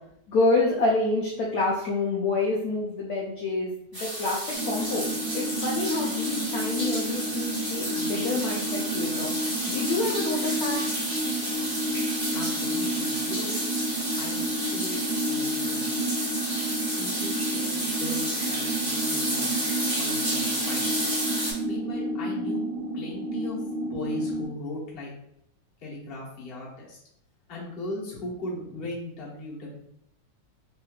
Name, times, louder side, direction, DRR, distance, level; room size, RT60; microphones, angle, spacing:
voice 1, 0.3-4.4 4.6-5.0 5.3-9.3 9.7-10.8, left 3 dB, 70° left, -2 dB, 0.9 m, -27 dB
sound 1, 3.9-21.5, right 1 dB, 20° right, 0.6 m, -31 dB
sound 2, 4.5-24.5, right 1 dB, 75° right, 1.3 m, -31 dB
voice 2, 12.3-13.5 14.2-15.8 17.0-20.9 21.7-22.6 22.9-25.1 25.8-27.0 27.5-29.8, left 2 dB, 40° left, -5 dB, 0.9 m, -38 dB
3.3 x 3.0 x 2.3 m, 0.74 s
omnidirectional pair, 2.0 m